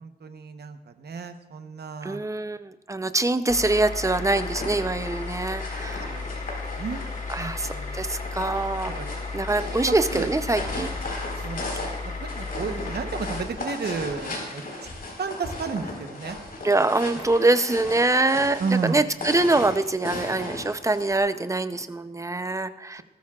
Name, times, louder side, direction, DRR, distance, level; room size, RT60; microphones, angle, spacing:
voice 1, 0.0-2.2 6.1-6.3 6.6-7.0 7.4-8.1 9.0-9.1 9.6-10.3 11.4-11.7 12.0-14.6 15.2-16.4 18.6-19.1, right 5 dB, 70° right, 8 dB, 1.0 m, -32 dB
voice 2, 2.0-6.2 7.3-9.0 9.3-10.9 12.7-12.9 16.6-23.0, right 2 dB, 20° right, 11 dB, 0.6 m, -24 dB
sound 1, 3.5-13.5, left 4 dB, 45° left, 1.5 m, -34 dB
sound 2, 4.2-21.2, left 2 dB, 60° left, 4.4 m, -37 dB
20.0 x 13.5 x 2.4 m, 1.1 s
wide cardioid pair, 125°, 17 cm